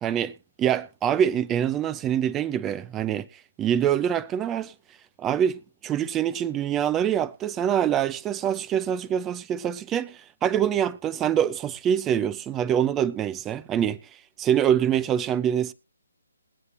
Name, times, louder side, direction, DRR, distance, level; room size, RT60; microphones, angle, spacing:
voice 1, 0.0-3.3 3.6-4.7 5.2-14.0 14.4-15.7, right 9 dB, 15° right, 0.5 m, -25 dB
22.0 x 8.0 x 2.5 m
figure-of-eight pair, 145°, 0 cm